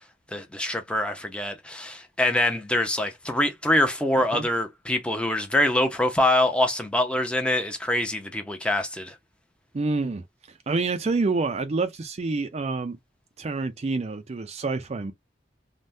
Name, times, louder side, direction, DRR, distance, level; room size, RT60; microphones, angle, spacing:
voice 1, 0.3-9.1, left 1 dB, 5° left, 0.6 m, -24 dB
voice 2, 9.7-10.2 10.7-13.0 13.4-15.1, right 3 dB, 35° right, 0.4 m, -27 dB
3.3 x 2.2 x 2.6 m
head